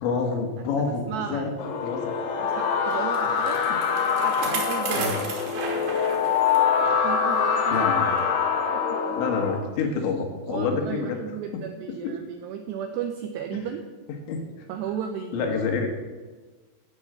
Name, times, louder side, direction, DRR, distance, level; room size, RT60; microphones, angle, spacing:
voice 1, 0.0-1.5 1.8-2.2 4.9-5.1 6.8-6.9 7.7-8.1 9.2-11.2 11.5-12.1 13.5-13.6 14.3-14.5 15.3-15.9, left 5 dB, 75° left, 3 dB, 3.4 m, -28 dB
voice 2, 1.1-1.5 2.4-3.6 4.2-5.4 6.9-7.9 8.7-9.3 9.9-10.0 10.5-13.8 14.7-15.5, right 8 dB, 85° right, 6 dB, 2.4 m, -34 dB
sound 1, 1.6-9.6, left 6 dB, 90° left, 2.0 m, -24 dB
Bicycle, 2.9-6.8 7.3-7.4 8.2-8.3, right 4 dB, 55° right, 3.2 m, -34 dB
12.5 x 5.4 x 7.8 m, 1.3 s
omnidirectional pair, 5.6 m